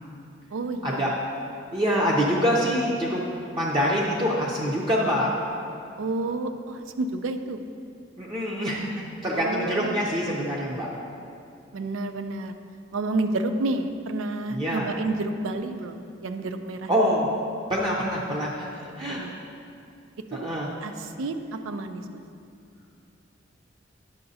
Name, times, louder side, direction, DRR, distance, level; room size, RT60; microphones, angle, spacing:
voice 1, 0.5-1.1 6.0-7.6 9.3-10.1 11.7-12.5 12.9-16.9 19.1-19.4 20.3-20.5 20.8-22.2, right 2 dB, 90° right, 8 dB, 0.4 m, -30 dB
voice 2, 1.7-3.2 3.5-5.3 8.2-10.9 14.5-14.9 16.9-17.3 17.7-19.2 20.3-20.7, equal, 25° right, -5 dB, 0.6 m, -25 dB
9.7 x 5.7 x 2.7 m, 2.5 s
head